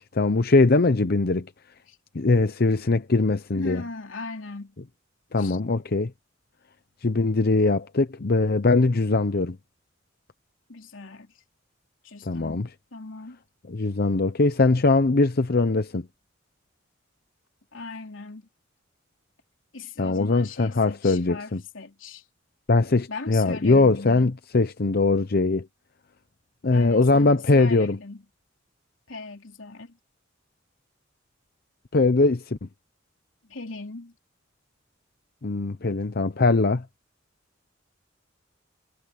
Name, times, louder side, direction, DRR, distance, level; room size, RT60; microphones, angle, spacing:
voice 1, 0.0-1.5 2.1-3.8 5.3-6.1 7.0-9.6 12.3-12.7 13.7-16.1 20.0-21.6 22.7-25.7 26.6-28.0 31.9-32.7 35.4-36.8, left 3 dB, 50° left, 0.7 m, -21 dB
voice 2, 3.5-4.8 5.4-5.6 10.7-11.3 12.0-13.4 17.7-18.5 19.7-22.2 23.1-24.3 26.7-28.2 29.1-30.0 33.4-34.1, left 3 dB, 90° left, 3.1 m, -38 dB
head